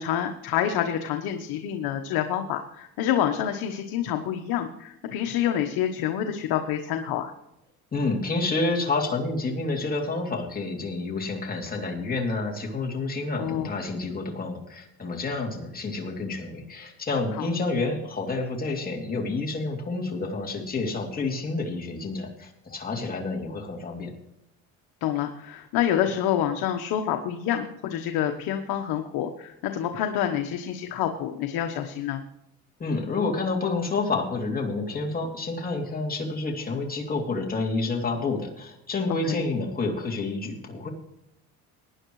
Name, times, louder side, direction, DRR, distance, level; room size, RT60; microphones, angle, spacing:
voice 1, 0.0-7.3 13.4-13.7 17.4-17.5 25.0-32.2 39.1-39.4, left 10 dB, 75° left, 5 dB, 1.2 m, -27 dB
voice 2, 7.9-24.1 32.8-40.9, left 3 dB, 25° left, -1 dB, 3.0 m, -29 dB
19.0 x 10.0 x 3.2 m, 0.86 s
cardioid pair, 105°, 37 cm